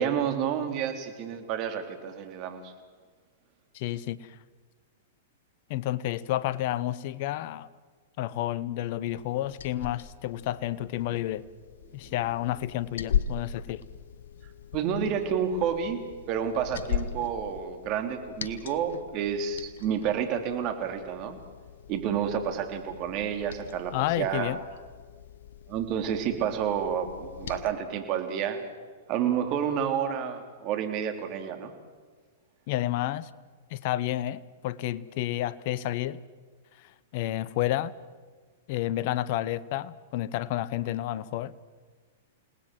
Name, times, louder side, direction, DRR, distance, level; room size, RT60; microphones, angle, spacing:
voice 1, 0.0-2.7 12.0-12.1 14.7-16.0 16.3-21.4 21.9-24.6 25.7-28.6 29.1-31.7, right 8 dB, 40° right, 3.5 m, -30 dB
voice 2, 3.7-4.4 5.7-7.7 8.2-11.4 11.9-13.8 23.9-24.6 32.7-33.3 33.7-36.2 36.8-37.9 38.7-41.5, left 14 dB, 50° left, 1.0 m, -30 dB
Liquid, 9.1-27.7, left 8 dB, 70° left, 1.2 m, -39 dB
29.0 x 19.0 x 7.8 m
hypercardioid pair, 110°, 0 cm